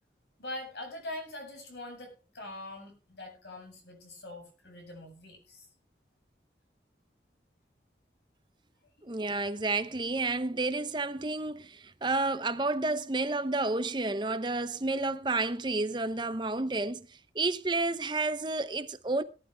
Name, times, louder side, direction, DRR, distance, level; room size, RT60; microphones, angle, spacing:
voice 1, 0.4-5.7, left 2 dB, 80° left, 7.8 m, -43 dB
voice 2, 9.0-17.1 17.3-19.2, right 3 dB, 25° right, 0.8 m, -30 dB
18.5 x 11.5 x 3.5 m
head